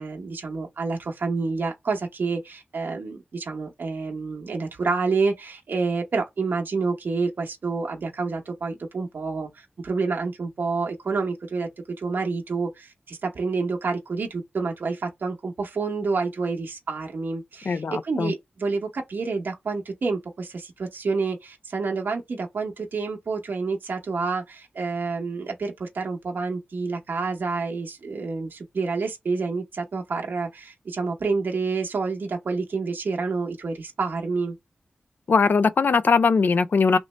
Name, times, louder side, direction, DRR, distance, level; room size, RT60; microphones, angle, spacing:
voice 1, 0.0-11.7 12.0-34.5, right 4 dB, 65° right, 0.8 m, -28 dB
voice 2, 17.7-18.3 35.3-37.0, left 5 dB, 60° left, 0.4 m, -20 dB
3.0 x 2.6 x 3.1 m
wide cardioid pair, 85°, 4 cm